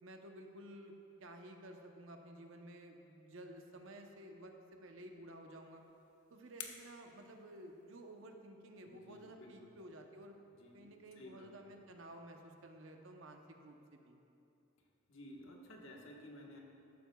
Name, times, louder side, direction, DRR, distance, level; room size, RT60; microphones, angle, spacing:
voice 1, 0.0-5.8 6.3-10.4 10.7-14.2, right 1 dB, 60° right, 3 dB, 0.8 m, -53 dB
sound 1, 5.5-8.2, left 7 dB, 85° left, 0.9 m, -54 dB
voice 2, 8.9-9.7 10.5-11.7 15.1-16.6, left 1 dB, 60° left, -1 dB, 1.3 m, -55 dB
13.5 x 11.5 x 2.3 m, 2.8 s
head